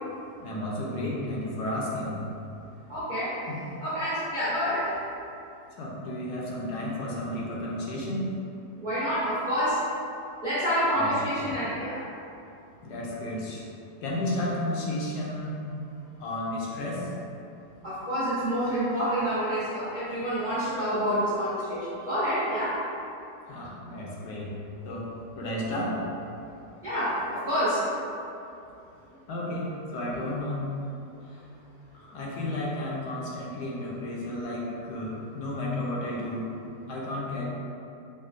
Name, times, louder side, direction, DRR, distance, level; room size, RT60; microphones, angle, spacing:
voice 1, 0.4-2.2 3.5-3.6 5.8-8.3 10.9-11.1 11.4-11.6 12.8-13.6 14.0-15.6 16.2-17.1 23.5-24.6 24.8-26.1 29.3-30.6 31.3-31.4 31.9-36.5 36.9-37.4, left 1 dB, 75° left, -4 dB, 1.2 m, -32 dB
voice 2, 2.9-3.3 3.8-4.9 8.8-9.8 10.4-12.0 17.8-22.7 26.8-27.8, equal, 50° right, -13 dB, 0.5 m, -28 dB
5.2 x 2.0 x 2.5 m, 2.6 s
omnidirectional pair, 1.8 m